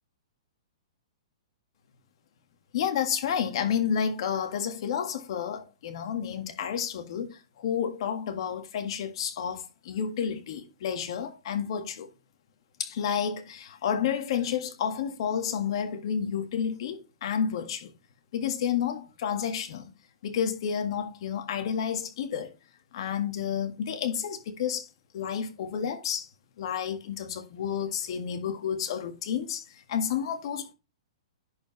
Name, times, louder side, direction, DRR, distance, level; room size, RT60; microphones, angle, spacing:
voice 1, 2.7-12.1 12.8-17.9 18.3-19.9 20.2-22.5 22.9-24.9 25.1-26.3 26.6-30.7, left 8 dB, 60° left, 1.6 m, -30 dB
10.5 x 4.8 x 3.2 m
hypercardioid pair, 135°, 3 cm